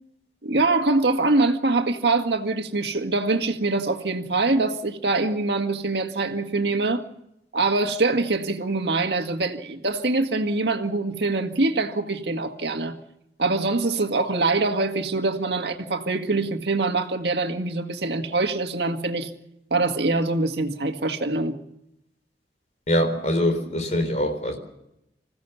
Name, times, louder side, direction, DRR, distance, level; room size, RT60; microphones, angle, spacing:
voice 1, 0.4-7.1 7.5-13.0 13.4-19.3 19.7-21.6, right 3 dB, 75° right, 1.9 m, -24 dB
voice 2, 22.9-24.6, equal, 40° left, 4.1 m, -23 dB
26.5 x 16.0 x 7.1 m
head